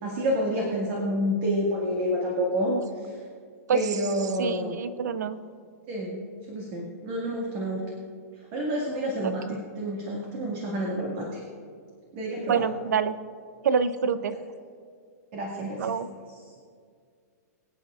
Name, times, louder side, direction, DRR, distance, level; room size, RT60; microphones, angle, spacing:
voice 1, 0.0-2.7 3.7-4.7 5.9-6.2 6.5-7.8 8.5-11.4 12.1-12.7 15.3-16.4, equal, 40° right, -2 dB, 1.9 m, -29 dB
voice 2, 4.4-5.4 9.2-9.6 12.5-13.2 13.6-14.4 15.8-16.1, right 6 dB, 80° right, 14 dB, 0.6 m, -26 dB
23.5 x 8.7 x 2.4 m, 2.1 s
hypercardioid pair, 165°, 9 cm